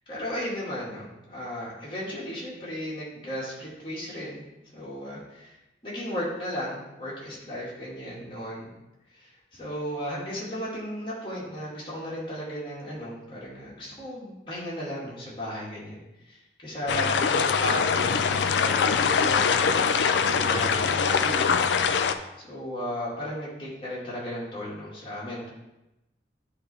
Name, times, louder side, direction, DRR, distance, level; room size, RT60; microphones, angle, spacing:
voice 1, 0.1-4.4 4.7-5.6 5.8-8.7 9.1-21.6 22.4-25.5, equal, 30° left, -7 dB, 2.1 m, -35 dB
sound 1, 16.9-22.1, left 6 dB, 85° left, 0.4 m, -23 dB
9.6 x 3.3 x 4.2 m, 0.93 s
head